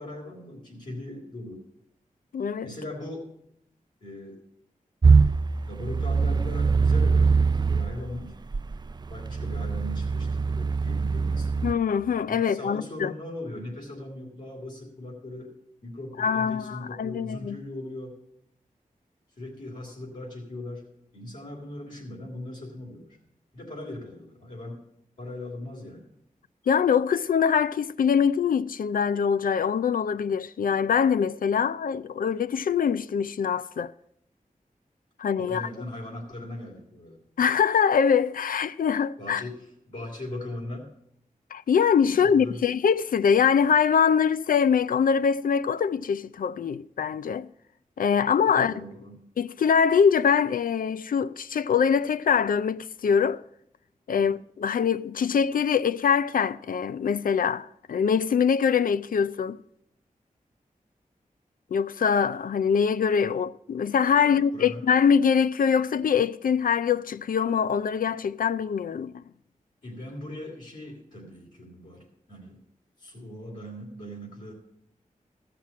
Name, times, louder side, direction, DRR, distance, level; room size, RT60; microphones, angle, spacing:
voice 1, 0.0-1.6 2.6-3.2 4.0-4.4 5.6-8.4 9.1-11.7 12.3-15.5 15.8-18.2 19.4-20.9 21.1-23.2 23.5-24.8 25.2-26.1 35.4-37.2 39.2-40.9 42.0-42.6 48.4-49.1 54.1-54.3 64.2-64.8 69.8-72.6 73.0-74.5, left 1 dB, 65° left, 3.0 m, -39 dB
voice 2, 2.3-2.7 11.6-13.1 16.2-17.6 26.7-33.9 35.2-35.7 37.4-39.4 41.5-47.5 48.0-48.7 49.4-53.4 54.1-59.6 61.7-69.2, left 7 dB, 90° left, 0.4 m, -23 dB
sound 1, 5.0-7.9 8.5-11.7, right 4 dB, 30° right, 0.3 m, -22 dB
14.5 x 6.0 x 7.2 m
wide cardioid pair, 85°, 14 cm